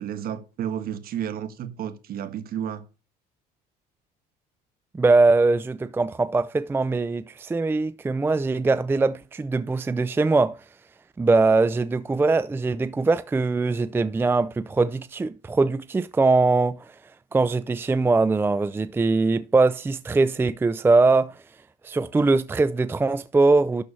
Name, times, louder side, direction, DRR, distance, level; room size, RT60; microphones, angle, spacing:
voice 1, 0.0-2.8, right 9 dB, 50° right, 1.5 m, -32 dB
voice 2, 4.9-10.6 11.2-16.9 17.3-21.4 21.8-23.8, right 3 dB, 10° right, 0.4 m, -21 dB
12.0 x 4.6 x 5.6 m
cardioid pair, 110°, 19 cm